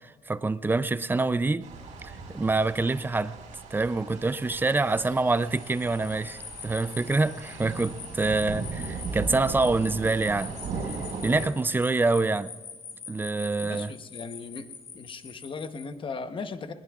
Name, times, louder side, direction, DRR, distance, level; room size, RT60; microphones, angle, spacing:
voice 1, 0.3-1.7 2.0-3.4 3.7-10.5 11.2-12.5 13.1-13.9, right 3 dB, 15° right, 0.4 m, -26 dB
sound 1, 1.6-11.5, right 4 dB, 85° right, 4.8 m, -38 dB
sound 2, 5.5-15.8, left 6 dB, 60° left, 2.9 m, -44 dB
voice 2, 13.6-14.7 14.9-16.7, left 4 dB, 40° left, 1.0 m, -37 dB
20.5 x 19.0 x 2.4 m
cardioid pair, 120°, 13 cm